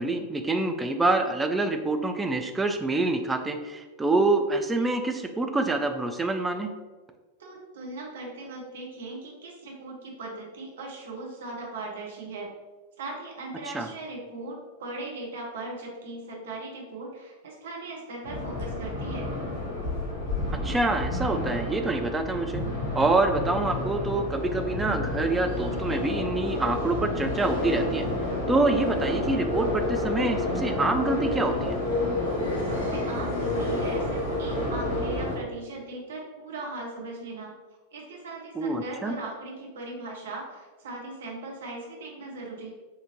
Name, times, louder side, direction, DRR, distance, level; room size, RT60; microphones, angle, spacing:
voice 1, 0.0-6.7 13.7-13.9 20.6-22.6 23.0-28.1 28.5-31.8 38.5-39.1, right 2 dB, 10° right, 5 dB, 0.3 m, -26 dB
voice 2, 7.4-12.5 13.0-19.3 32.5-37.5 37.9-42.7, right 2 dB, 60° right, -1 dB, 0.8 m, -39 dB
sound 1, 18.2-35.4, left 2 dB, 55° left, 1.1 m, -30 dB
Musical instrument, 20.3-35.3, right 4 dB, 5° left, 0.8 m, -41 dB
4.2 x 2.6 x 2.9 m, 1.3 s
figure-of-eight pair, 90°, 0 cm